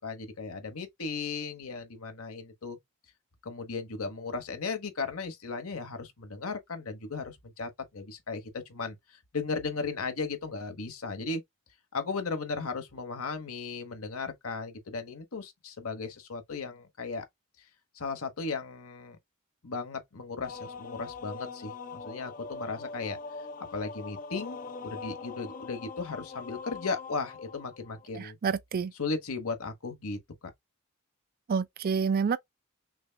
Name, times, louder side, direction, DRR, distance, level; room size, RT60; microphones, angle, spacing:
voice 1, 0.0-2.8 3.4-11.4 11.9-17.2 17.6-17.7 17.9-19.2 19.6-23.2 23.6-24.6 24.8-28.4 29.0-30.2, left 4 dB, 80° left, 1.1 m, -36 dB
sound 1, 20.4-28.1, left 4 dB, 40° left, 0.5 m, -42 dB
voice 2, 28.1-28.9 31.5-32.4, right 6 dB, 45° right, 0.4 m, -28 dB
6.0 x 2.2 x 2.2 m
head